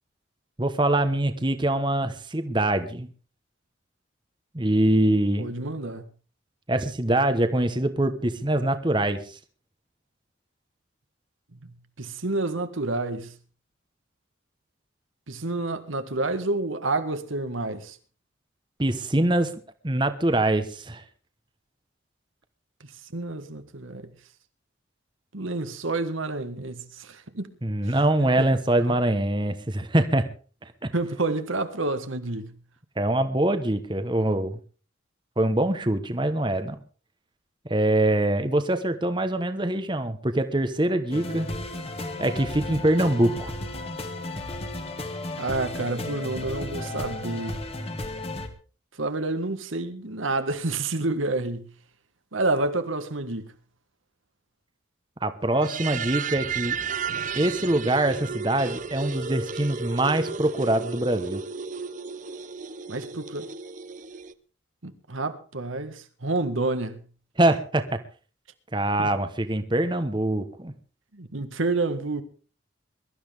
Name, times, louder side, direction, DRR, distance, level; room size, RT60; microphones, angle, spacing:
voice 1, 0.6-3.1 4.5-5.5 6.7-9.4 18.8-19.5 19.8-21.0 27.6-30.3 30.8-30.9 33.0-34.6 35.4-36.8 37.7-41.5 42.2-43.5 55.2-56.8 57.4-61.4 67.4-68.0 68.7-70.7, right 1 dB, 25° right, 1.1 m, -24 dB
voice 2, 5.4-6.0 11.6-11.7 12.0-13.3 15.3-18.0 23.1-24.1 25.3-27.5 27.9-28.0 28.4-28.5 28.9-29.0 30.9-32.5 45.4-47.6 49.0-51.7 52.3-53.5 62.9-63.5 64.8-67.0 69.0-69.1 71.1-72.2, right 2 dB, 90° right, 1.7 m, -29 dB
sound 1, 41.1-48.5, left 2 dB, 30° left, 1.8 m, -34 dB
sound 2, 55.5-64.3, right 5 dB, 40° right, 0.7 m, -33 dB
22.5 x 13.0 x 3.5 m
head